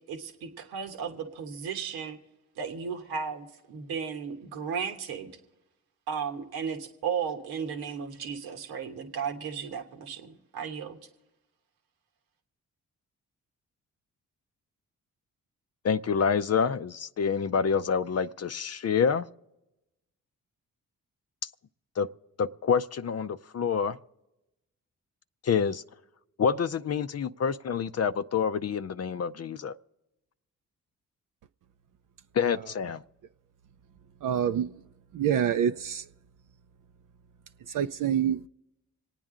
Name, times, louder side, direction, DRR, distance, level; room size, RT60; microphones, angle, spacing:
voice 1, 0.1-2.2 2.6-5.3 6.1-11.0, right 6 dB, 90° right, 1.1 m, -35 dB
voice 2, 15.8-19.3 22.0-22.1 22.4-24.0 25.4-25.8 26.4-29.7 32.3-33.0, left 6 dB, 45° left, 0.5 m, -27 dB
voice 3, 34.2-34.8 35.1-36.0 37.7-38.5, right 9 dB, 60° right, 0.5 m, -26 dB
26.0 x 9.0 x 3.7 m
supercardioid pair, 45°, 37 cm